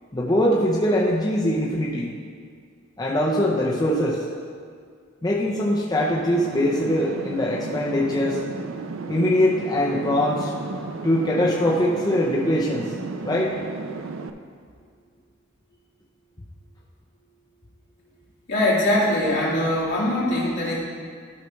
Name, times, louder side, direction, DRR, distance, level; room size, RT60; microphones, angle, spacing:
voice 1, 0.1-2.2 3.0-4.3 5.2-8.4 9.1-10.5 11.0-12.9 13.2-13.6, left 1 dB, 20° left, -4 dB, 0.6 m, -22 dB
sound 1, 6.3-14.3, right 3 dB, 75° right, 0.4 m, -34 dB
voice 2, 18.5-20.8, left 1 dB, 60° left, -7 dB, 2.2 m, -22 dB
12.5 x 5.8 x 3.1 m, 2.1 s
head